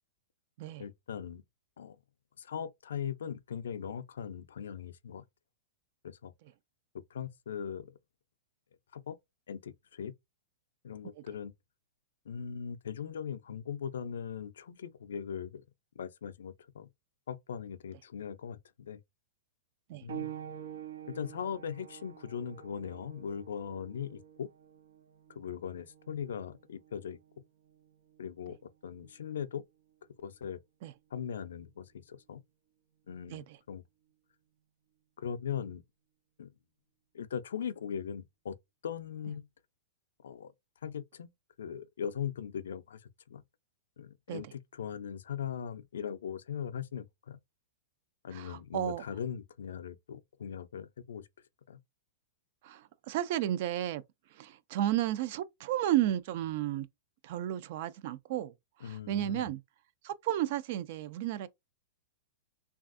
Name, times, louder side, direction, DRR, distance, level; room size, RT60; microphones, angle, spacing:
voice 1, 0.8-1.4 1.8-2.0 2.4-5.2 6.0-6.3 7.1-7.9 8.9-9.2 9.5-10.1 10.8-11.5 12.3-15.6 16.0-16.9 17.3-19.0 20.0-20.3 21.1-24.5 25.4-27.2 28.2-29.6 30.2-30.6 31.1-32.4 33.1-33.8 35.2-35.8 36.4-36.5 37.1-38.6 38.8-39.5 40.2-40.5 40.8-41.3 41.6-43.0 43.3-43.4 44.0-47.4 48.2-51.3 51.7-51.8 58.8-59.5, left 8 dB, 85° left, 0.4 m, -39 dB
sound 1, 20.1-30.3 31.3-31.4 32.1-32.2, right 10 dB, 90° right, 0.7 m, -48 dB
voice 2, 48.3-49.0 52.6-54.0 54.3-56.9 57.2-58.5 58.8-59.6 60.0-61.5, right 12 dB, 45° right, 0.3 m, -33 dB
3.3 x 2.3 x 2.5 m
hypercardioid pair, 160°, 0 cm